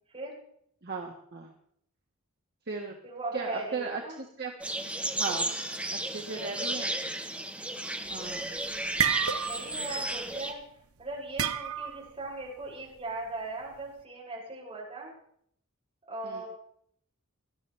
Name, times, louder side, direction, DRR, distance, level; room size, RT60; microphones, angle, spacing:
voice 1, 0.8-1.5 2.7-2.9 3.3-4.5 5.1-5.5 5.9-6.9 8.1-8.5 16.2-16.4, right 4 dB, 50° right, 1 dB, 1.4 m, -36 dB
voice 2, 3.0-4.2 6.3-6.5 9.5-10.6 11.0-15.1 16.0-16.5, right 2 dB, 30° right, -5 dB, 7.0 m, -38 dB
sound 1, 4.6-10.5, right 1 dB, 5° right, 1.1 m, -34 dB
sound 2, 8.1-8.4 8.7-9.8 10.1-10.4 11.4-12.1, right 8 dB, 85° right, 0.7 m, -29 dB
19.5 x 12.5 x 3.3 m, 0.68 s
head